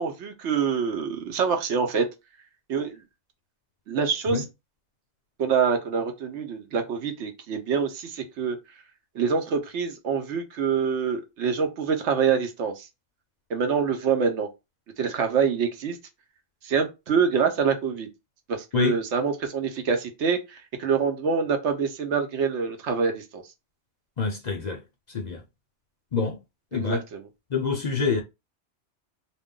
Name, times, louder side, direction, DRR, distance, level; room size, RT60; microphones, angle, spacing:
voice 1, 0.0-2.0 2.7-3.0 3.9-4.4 5.4-8.6 9.1-12.9 13.5-14.5 15.0-16.0 16.6-18.1 18.5-23.4 26.7-27.2, right 6 dB, 80° right, 1.0 m, -25 dB
voice 2, 24.2-24.8 25.1-25.4 26.1-26.4 26.7-27.0 27.5-28.2, left 5 dB, 50° left, 0.6 m, -26 dB
2.5 x 2.2 x 3.5 m
omnidirectional pair, 1.2 m